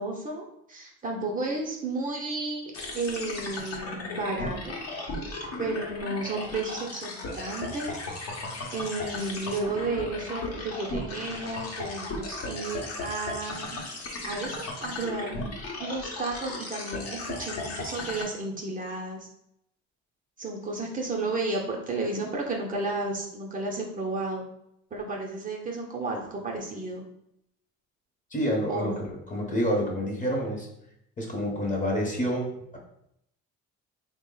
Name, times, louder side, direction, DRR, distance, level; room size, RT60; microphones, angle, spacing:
voice 1, 0.0-4.8 5.6-8.0 8.7-13.8 14.3-15.3 15.8-19.3 20.4-24.5 24.9-27.0 28.7-29.0, right 2 dB, 30° right, -1 dB, 0.6 m, -32 dB
sound 1, 2.7-18.2, left 2 dB, 55° left, 0.8 m, -36 dB
voice 2, 28.3-30.7 31.2-32.8, equal, 25° left, 0 dB, 0.9 m, -28 dB
3.5 x 2.1 x 3.7 m, 0.77 s
cardioid pair, 115°, 29 cm